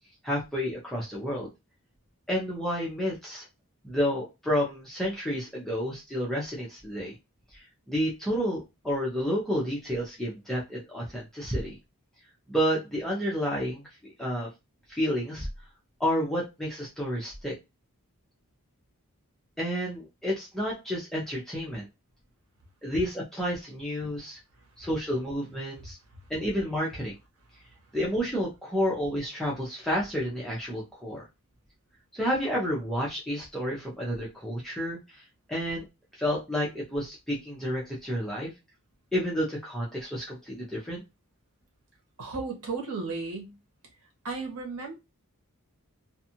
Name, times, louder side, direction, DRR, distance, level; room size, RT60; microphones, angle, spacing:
voice 1, 0.2-1.5 2.3-3.5 3.8-7.1 7.5-11.8 12.5-13.8 14.2-14.5 14.9-15.5 16.0-17.5 19.6-21.9 22.8-24.4 24.8-26.0 26.3-27.1 27.9-31.2 32.1-35.2 35.5-35.8 36.2-38.5 39.1-41.0, equal, ahead, 0.6 m, -30 dB
voice 2, 42.2-43.6 44.2-44.9, right 4 dB, 85° right, 1.0 m, -34 dB
2.5 x 2.4 x 2.8 m
head